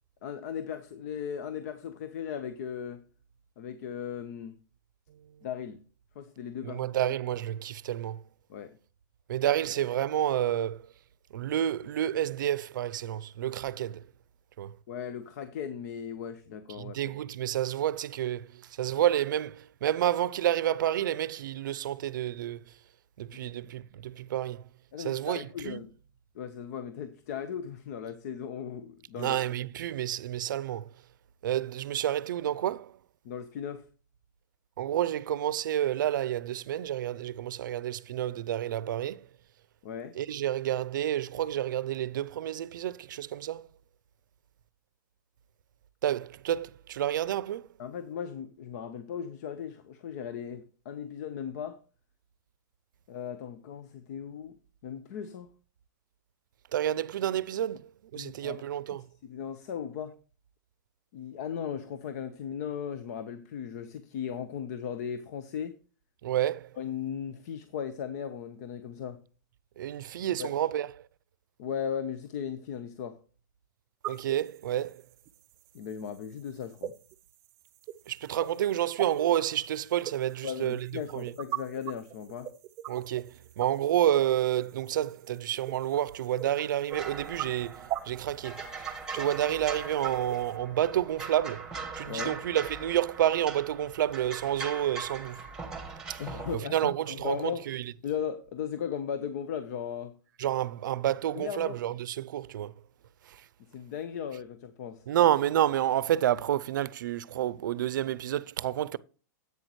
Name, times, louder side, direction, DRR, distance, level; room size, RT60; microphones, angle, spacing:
voice 1, 0.2-3.0 3.6-4.6 5.4-5.8 6.1-6.9 8.5-8.8 14.9-17.0 23.4-23.5 24.9-25.9 26.3-29.4 33.2-33.8 39.8-40.2 47.8-51.8 53.1-54.6 54.8-55.5 58.1-60.1 61.1-65.8 66.8-69.2 70.4-70.5 71.6-73.2 75.7-76.9 80.4-82.5 92.1-92.4 96.2-97.6 98.0-100.2 101.3-101.8 103.7-105.1, left 8 dB, 55° left, 0.9 m, -37 dB
voice 2, 6.6-8.2 9.3-10.8 11.3-14.0 14.6-14.8 16.8-18.5 18.8-22.6 23.2-24.6 25.0-25.8 29.2-30.9 31.4-32.9 34.8-39.2 40.2-43.7 46.0-47.7 56.7-59.0 66.2-66.7 69.8-70.9 74.1-75.0 78.1-80.9 81.1-81.3 82.9-88.6 89.1-95.4 96.1-96.2 96.5-97.8 100.4-102.7 105.1-109.0, right 11 dB, 75° right, 0.5 m, -29 dB
sound 1, 74.0-90.5, right 13 dB, 25° right, 0.6 m, -42 dB
sound 2, 86.9-96.6, right 4 dB, 5° right, 1.4 m, -41 dB
10.5 x 8.5 x 3.1 m
hypercardioid pair, 145°, 11 cm